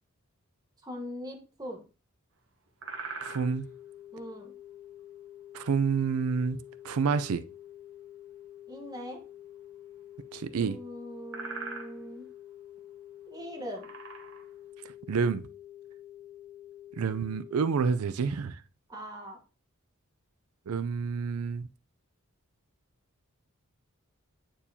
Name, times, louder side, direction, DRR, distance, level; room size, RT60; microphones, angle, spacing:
voice 1, 0.8-1.8 4.1-4.5 8.7-9.2 10.6-12.3 13.3-13.9 18.9-19.4, equal, 15° right, 1.2 m, -41 dB
sound 1, 2.7-3.7 6.7-6.8 10.2-10.3 10.8-10.9 11.2-12.1 12.8-12.9 13.5-14.5, right 4 dB, 60° right, 1.2 m, -41 dB
sound 2, 3.2-17.6, left 12 dB, 20° left, 2.9 m, -48 dB
voice 2, 3.2-3.7 5.5-6.6 6.8-7.4 10.3-10.8 15.1-15.4 17.0-18.6 20.7-21.7, right 5 dB, 90° right, 0.5 m, -28 dB
8.7 x 4.5 x 2.8 m
head